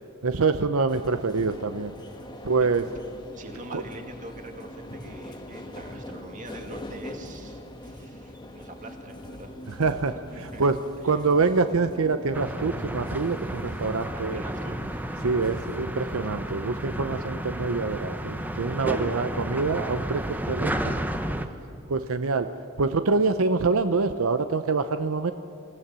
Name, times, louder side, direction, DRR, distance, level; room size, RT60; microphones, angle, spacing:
voice 1, 0.2-1.9 2.4-2.9 3.7-3.8 9.8-10.8 11.0-14.4 15.2-20.7 21.9-22.5 22.8-25.3, right 4 dB, 85° right, 10 dB, 0.7 m, -25 dB
sound 1, 0.9-15.8, left 1 dB, 20° left, 1.5 m, -42 dB
voice 2, 2.3-2.7 3.3-9.5 10.3-10.6 11.0-11.2 14.1-14.8 18.7-19.2 20.2-20.9, right 2 dB, 40° right, 4 dB, 2.2 m, -43 dB
sound 2, 12.3-21.5, right 1 dB, 10° right, 0.9 m, -32 dB
23.0 x 15.5 x 7.5 m, 2.9 s
head